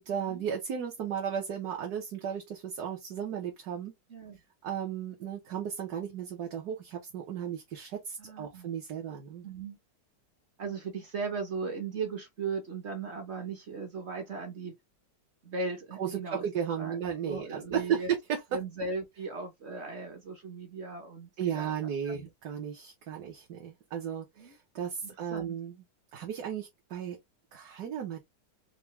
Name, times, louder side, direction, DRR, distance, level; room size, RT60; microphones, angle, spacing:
voice 1, 0.0-3.9 4.6-9.5 16.0-18.0 18.3-18.6 21.4-25.7 26.1-27.2 27.5-28.2, right 8 dB, 65° right, 1.4 m, -35 dB
voice 2, 8.2-8.8 9.4-9.8 10.6-14.7 15.4-16.4 16.8-18.1 18.5-21.7 22.1-22.3 24.4-24.5 25.3-25.6, right 4 dB, 50° right, 0.9 m, -37 dB
4.7 x 2.3 x 3.0 m
omnidirectional pair, 1.9 m